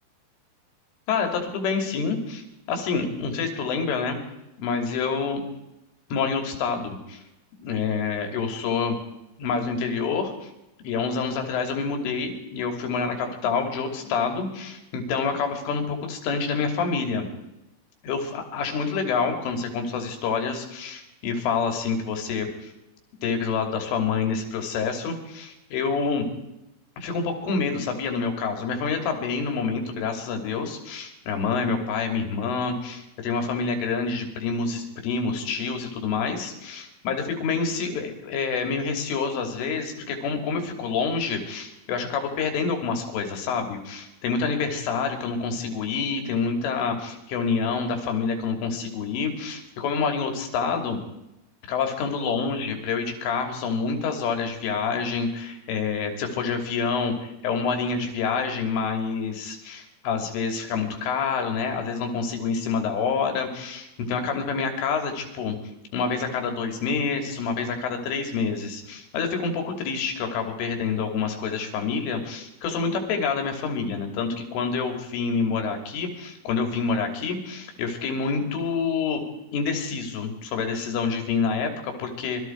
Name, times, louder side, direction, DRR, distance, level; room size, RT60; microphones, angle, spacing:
voice 1, 1.1-4.2 4.6-5.4 6.1-7.2 7.6-9.0 9.4-10.5 10.8-17.3 18.0-22.7 23.2-26.3 27.0-51.0 51.7-65.6 65.9-79.2 79.5-82.5, left 5 dB, 75° left, 4 dB, 5.5 m, -27 dB
26.5 x 22.5 x 4.7 m, 0.91 s
omnidirectional pair, 5.8 m